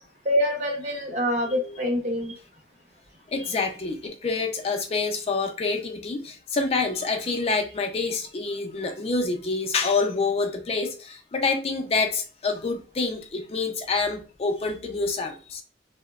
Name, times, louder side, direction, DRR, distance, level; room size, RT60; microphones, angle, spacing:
voice 1, 0.2-2.3, equal, 40° right, 0.6 m, -25 dB
voice 2, 3.3-15.6, left 4 dB, 35° left, 0.4 m, -27 dB
2.8 x 2.0 x 2.3 m
head